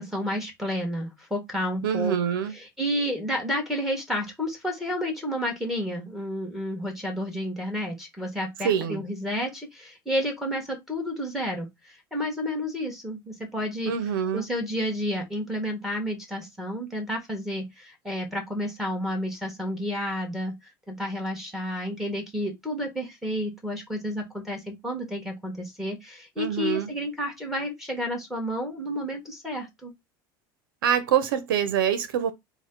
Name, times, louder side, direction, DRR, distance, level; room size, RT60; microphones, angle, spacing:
voice 1, 0.0-2.2 2.5-13.9 14.3-20.5 20.9-29.9, equal, ahead, 1.7 m, -31 dB
voice 2, 1.8-2.5 8.6-9.0 13.9-14.5 26.4-26.9 30.8-32.3, right 8 dB, 85° right, 0.8 m, -25 dB
4.0 x 2.4 x 3.8 m
supercardioid pair, 105°, 11 cm